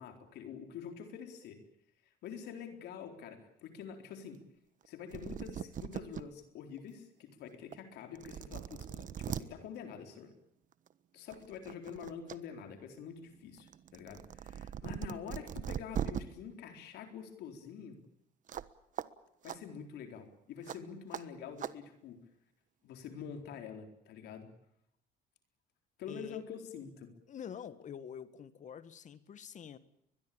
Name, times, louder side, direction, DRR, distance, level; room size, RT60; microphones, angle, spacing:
voice 1, 0.0-1.6 2.2-4.4 4.8-10.3 11.1-18.0 19.4-22.2 22.8-24.5 26.0-27.1, left 7 dB, 75° left, 6 dB, 4.2 m, -46 dB
sound 1, 4.8-4.9 5.1-6.2 6.8-6.9 7.7-7.8 8.1-9.4 10.7-10.9 11.3-12.4 12.7-16.2 18.5-18.7 19.0-19.1 19.4-19.6 20.7-20.8 21.1-21.2 21.6-21.7, right 9 dB, 50° right, 1.3 m, -40 dB
voice 2, 26.1-26.4 27.3-29.8, left 8 dB, 45° left, 14 dB, 1.7 m, -46 dB
22.5 x 21.5 x 8.8 m, 0.77 s
cardioid pair, 110°, 17 cm